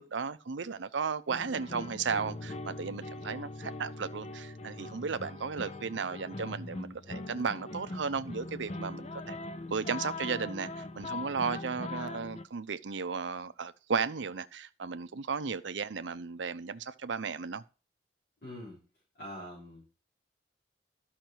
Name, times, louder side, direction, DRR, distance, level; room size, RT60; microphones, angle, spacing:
voice 1, 0.0-9.4 9.7-17.6, right 5 dB, 85° right, 0.6 m, -35 dB
sound 1, 1.3-12.4, left 2 dB, 35° left, 0.6 m, -41 dB
voice 2, 18.4-18.8 19.1-19.9, equal, 50° left, 5.0 m, -44 dB
12.0 x 5.8 x 4.5 m
head